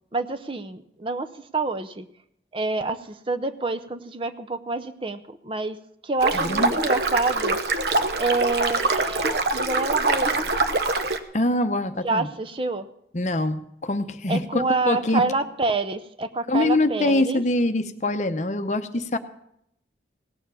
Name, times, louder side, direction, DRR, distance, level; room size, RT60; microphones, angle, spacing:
voice 1, 0.1-1.3 1.5-2.1 2.5-5.8 6.0-7.6 8.1-10.5 12.0-12.9 14.3-17.4, right 3 dB, 30° right, 9 dB, 0.6 m, -27 dB
sound 1, 6.2-11.2, right 3 dB, 65° right, 0.9 m, -24 dB
voice 2, 6.3-6.7 11.3-12.3 13.1-15.2 16.5-19.2, left 1 dB, 40° left, 10 dB, 0.7 m, -24 dB
17.5 x 7.2 x 6.8 m, 0.75 s
head